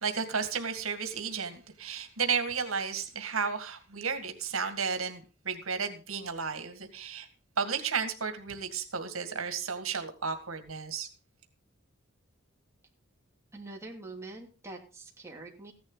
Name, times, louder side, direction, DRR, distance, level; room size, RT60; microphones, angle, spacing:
voice 1, 0.0-7.3 7.6-11.1, right 5 dB, 85° right, 7 dB, 2.0 m, -33 dB
voice 2, 13.5-15.7, right 2 dB, 15° right, -1 dB, 2.8 m, -44 dB
15.0 x 10.5 x 4.0 m, 0.35 s
head